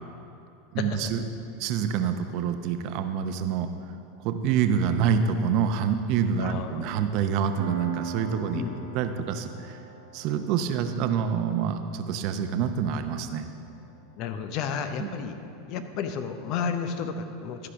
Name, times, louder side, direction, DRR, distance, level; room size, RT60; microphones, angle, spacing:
voice 1, 0.7-1.2 1.6-3.7 4.2-8.6 8.9-9.8 10.1-13.4 15.0-15.1, right 7 dB, 55° right, 8 dB, 0.7 m, -27 dB
voice 2, 6.4-7.0 8.5-8.8 14.2-15.4 15.7-17.7, left 6 dB, 55° left, 8 dB, 0.7 m, -32 dB
Piano, 7.6-15.0, right 6 dB, 80° right, 1.3 m, -40 dB
12.5 x 4.8 x 5.8 m, 2.7 s
hypercardioid pair, 105°, 0 cm